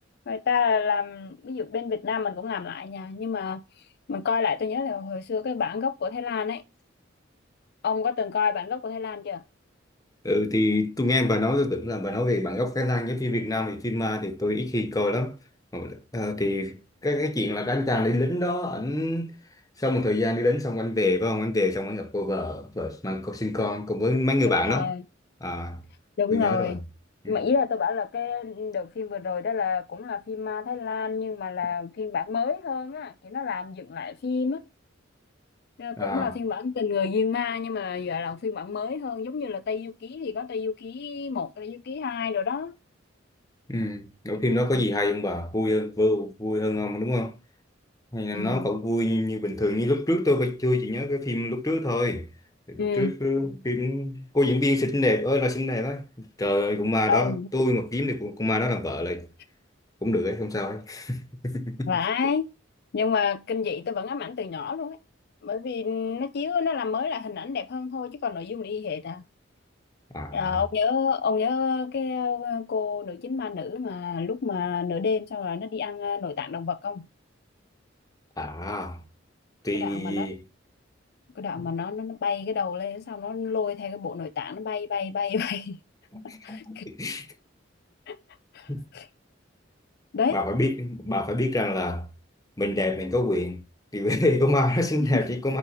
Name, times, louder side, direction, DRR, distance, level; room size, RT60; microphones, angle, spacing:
voice 1, 0.3-3.6 4.1-6.6 7.8-9.4 24.6-25.0 26.2-26.8 27.3-34.6 35.8-42.7 48.3-48.7 52.8-53.1 57.1-57.5 61.9-62.5 62.9-65.0 65.4-69.2 70.3-77.0 79.7-80.3 81.4-85.8 86.4-86.8 88.1-88.2 88.5-89.1 90.1-90.4 95.1-95.2, left 6 dB, 55° left, 0.4 m, -29 dB
voice 2, 10.2-15.4 15.7-19.3 19.8-24.9 25.4-25.8 26.3-26.7 27.2-27.4 36.0-36.3 43.7-47.3 48.1-52.3 52.7-59.3 60.0-61.9 70.1-70.4 78.4-79.0 79.6-80.4 81.6-81.7 86.1-87.3 88.7-88.8 90.3-92.1 92.6-93.6 93.9-95.6, left 1 dB, 20° left, 1.1 m, -26 dB
5.5 x 5.4 x 4.6 m
head